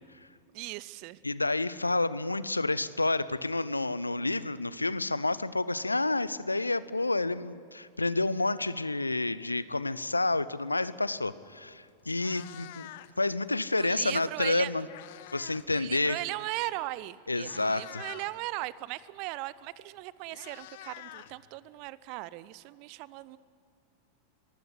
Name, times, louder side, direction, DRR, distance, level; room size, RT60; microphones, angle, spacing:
voice 1, 0.5-1.2 13.7-14.7 15.7-23.4, right 18 dB, 45° right, 19 dB, 0.7 m, -38 dB
voice 2, 1.2-12.9 13.2-14.9 15.3-16.2 17.3-18.0, left 2 dB, 80° left, 17 dB, 0.6 m, -29 dB
Meow, 11.5-11.7 12.0-13.3 14.4-15.7 16.0-16.3 17.0-17.1 17.4-18.3 19.6-19.7 20.0-21.9, left 14 dB, 50° left, 0.8 m, -47 dB
23.0 x 16.0 x 9.8 m, 2.5 s
figure-of-eight pair, 90°, 0 cm